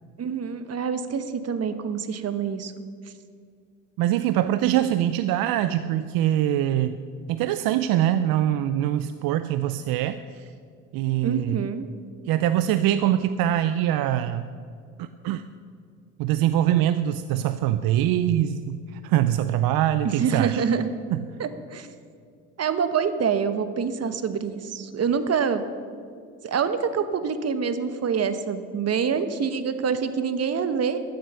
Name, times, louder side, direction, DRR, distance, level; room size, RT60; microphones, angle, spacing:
voice 1, 0.2-2.7 11.2-11.9 20.0-20.9 21.4-21.9 22.6-25.6 26.4-31.0, right 6 dB, 40° right, 11 dB, 1.1 m, -26 dB
voice 2, 4.0-7.0 7.3-10.5 10.9-11.6 12.3-14.4 15.0-15.4 16.2-20.6 21.1-21.2, right 12 dB, 70° right, 12 dB, 0.6 m, -23 dB
13.5 x 8.0 x 6.9 m, 2.2 s
supercardioid pair, 85°, 37 cm